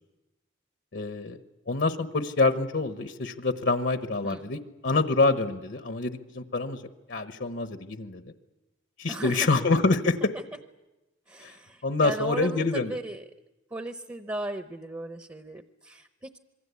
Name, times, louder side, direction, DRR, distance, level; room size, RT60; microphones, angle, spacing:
voice 1, 0.9-1.4 1.7-6.8 7.1-8.3 9.0-10.3 11.4-11.5 11.8-12.9, left 3 dB, 65° left, 9 dB, 1.1 m, -26 dB
voice 2, 9.1-9.5 11.3-13.2 13.7-16.4, right 1 dB, 15° right, 9 dB, 0.8 m, -36 dB
26.5 x 22.5 x 8.3 m, 1.1 s
head